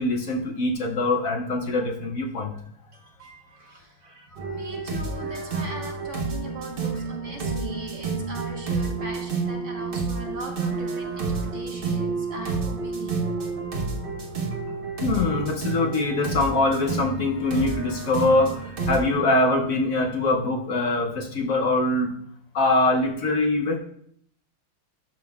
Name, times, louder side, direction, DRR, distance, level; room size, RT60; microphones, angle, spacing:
voice 1, 0.0-2.6 15.0-22.1 22.5-23.8, left 2 dB, 70° left, 2 dB, 0.8 m, -23 dB
voice 2, 2.9-13.2 14.1-14.2 14.5-14.6, right 1 dB, 45° right, 1 dB, 1.2 m, -40 dB
sound 1, 4.4-19.0, right 4 dB, 60° right, 0.5 m, -30 dB
12.0 x 5.2 x 2.3 m, 0.67 s
omnidirectional pair, 2.3 m